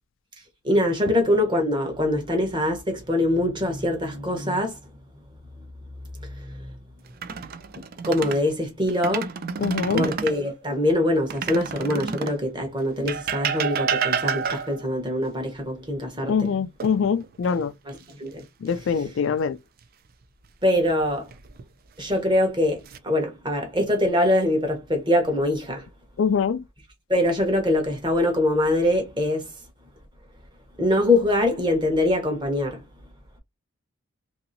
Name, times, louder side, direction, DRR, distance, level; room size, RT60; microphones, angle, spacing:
voice 1, 0.6-4.8 6.3-6.8 8.0-9.3 9.9-16.5 17.9-18.4 20.6-21.3 22.0-25.8 27.1-29.4 30.8-32.8, left 1 dB, 20° right, 1.0 m, -23 dB
sound 1, 7.1-8.4 8.9-10.4 11.3-12.4 13.1-14.9 16.8-17.5 17.9-18.1 21.0-21.6 22.3-23.0, right 6 dB, 45° right, 0.4 m, -29 dB
voice 2, 9.6-10.1 16.3-17.7 18.6-19.6 26.2-26.6, left 6 dB, 60° left, 0.3 m, -24 dB
3.0 x 2.7 x 2.6 m
head